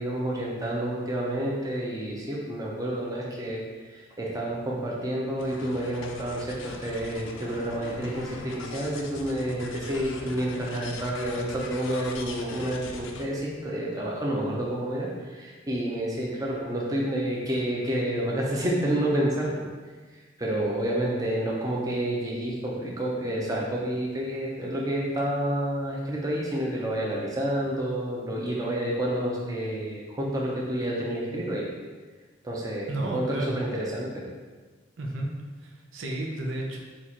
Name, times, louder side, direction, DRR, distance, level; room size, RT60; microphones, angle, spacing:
voice 1, 0.0-19.5 20.4-31.7 32.4-34.2, right 1 dB, 20° right, -4 dB, 0.6 m, -29 dB
sound 1, 5.4-13.3, left 3 dB, 90° left, 0.5 m, -41 dB
voice 2, 32.9-33.6 35.0-35.3 35.6-36.8, right 1 dB, 85° right, 0 dB, 0.7 m, -32 dB
4.3 x 2.5 x 4.2 m, 1.4 s
head